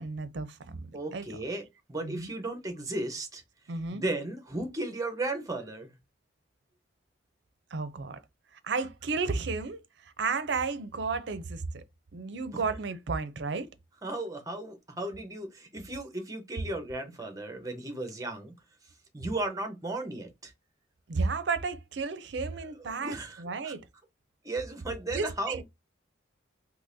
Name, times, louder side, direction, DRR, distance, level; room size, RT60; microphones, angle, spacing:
voice 1, 0.0-1.3 2.0-2.3 3.7-4.0 7.7-8.2 8.6-11.8 12.1-13.7 21.1-23.8 25.1-25.6, right 4 dB, 65° right, 0.5 m, -33 dB
voice 2, 0.9-3.4 3.9-5.9 12.5-12.8 14.0-18.5 19.1-20.5 22.8-23.7 24.4-25.6, right 2 dB, 20° right, 0.8 m, -35 dB
3.8 x 2.8 x 2.6 m
head